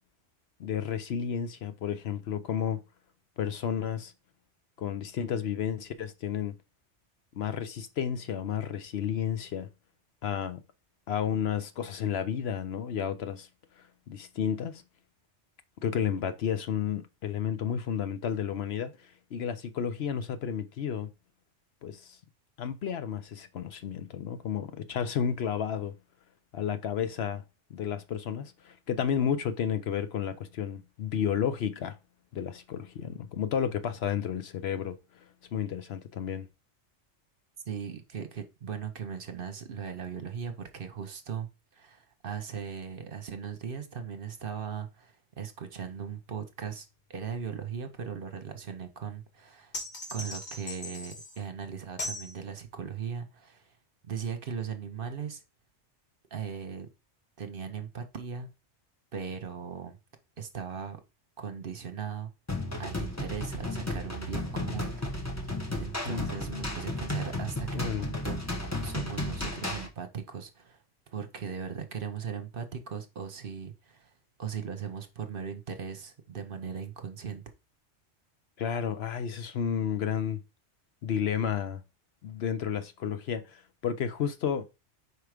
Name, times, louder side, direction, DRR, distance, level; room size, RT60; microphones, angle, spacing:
voice 1, 0.6-2.8 3.4-4.1 4.8-6.5 7.3-9.7 10.2-10.6 11.1-13.5 14.1-14.8 15.8-21.1 21.8-22.2 22.6-26.0 26.5-27.4 27.7-32.0 32.3-35.0 35.5-36.4 66.0-66.3 67.7-68.1 78.6-80.4 81.0-81.8 82.2-84.6, left 8 dB, 65° left, 0.9 m, -32 dB
voice 2, 37.7-49.8 50.1-53.8 54.0-55.4 56.3-56.9 57.4-58.5 59.1-60.0 60.4-61.0 61.4-62.3 62.8-64.9 65.3-68.4 68.8-70.8 71.1-74.1 74.4-77.4, right 7 dB, 50° right, 1.0 m, -38 dB
sound 1, 49.7-51.4 52.0-52.3, left 2 dB, 40° left, 1.6 m, -38 dB
sound 2, 62.5-69.9, left 1 dB, 15° left, 1.0 m, -34 dB
4.8 x 4.6 x 4.9 m
omnidirectional pair, 1.2 m